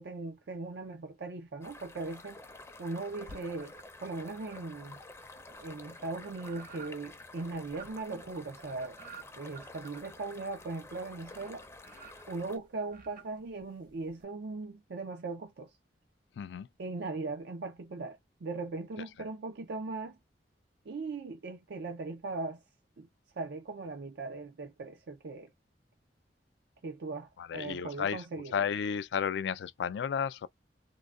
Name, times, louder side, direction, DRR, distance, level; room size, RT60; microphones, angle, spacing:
voice 1, 0.0-2.4 2.8-3.7 4.0-5.0 5.6-9.0 9.4-11.6 12.3-15.7 16.8-20.2 20.9-22.6 23.0-23.1 23.4-25.5 26.8-28.5, right 3 dB, 65° right, 0.5 m, -39 dB
sound 1, 1.6-12.6, left 2 dB, 15° left, 0.5 m, -50 dB
sound 2, 3.2-4.0 4.4-14.2, right 5 dB, 50° right, 1.0 m, -54 dB
voice 2, 16.4-16.7 27.4-30.5, left 7 dB, 70° left, 0.3 m, -33 dB
3.6 x 2.1 x 2.3 m
head